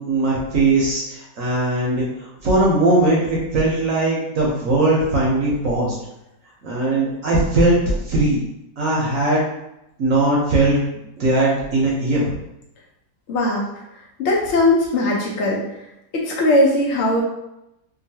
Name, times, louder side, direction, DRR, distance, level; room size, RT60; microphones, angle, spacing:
voice 1, 0.0-2.1 2.4-5.9 6.6-7.8 8.1-8.4 8.8-9.4 10.0-10.8 11.2-12.4, right 2 dB, 60° right, -4 dB, 0.9 m, -19 dB
voice 2, 13.3-13.7 14.2-15.6 16.1-17.2, left 1 dB, 85° left, -2 dB, 0.6 m, -19 dB
3.0 x 2.5 x 2.7 m, 0.87 s
omnidirectional pair, 1.8 m